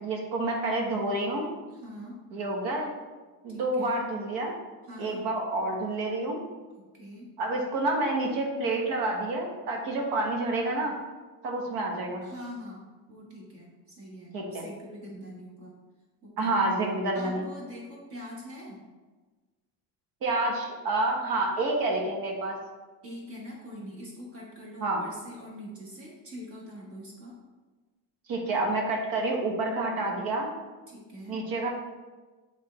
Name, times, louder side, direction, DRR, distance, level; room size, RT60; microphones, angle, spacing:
voice 1, 0.0-1.5 2.3-2.9 3.4-4.5 5.0-6.4 7.4-10.9 11.4-12.2 14.3-14.6 16.4-17.4 20.2-22.6 24.8-25.0 28.3-30.5 31.3-31.7, right 2 dB, 70° right, 0 dB, 1.4 m, -28 dB
voice 2, 1.7-2.2 3.5-4.0 4.8-5.2 6.8-7.3 12.2-15.7 16.2-16.6 17.1-18.8 23.0-27.3 30.9-31.4, equal, 40° right, -3 dB, 1.3 m, -43 dB
8.2 x 3.6 x 3.1 m, 1.3 s
cardioid pair, 170°, 36 cm